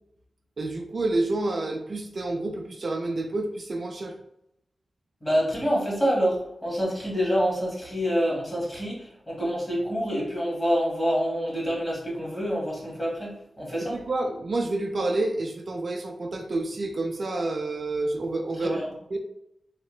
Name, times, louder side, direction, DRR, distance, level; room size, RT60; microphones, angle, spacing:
voice 1, 0.6-4.1 13.8-18.8 19.1-19.2, right 2 dB, 50° right, 3 dB, 0.4 m, -29 dB
voice 2, 5.2-14.0 18.6-18.9, equal, 20° left, -5 dB, 1.5 m, -27 dB
3.2 x 2.9 x 3.1 m, 0.79 s
wide cardioid pair, 155°, 0 cm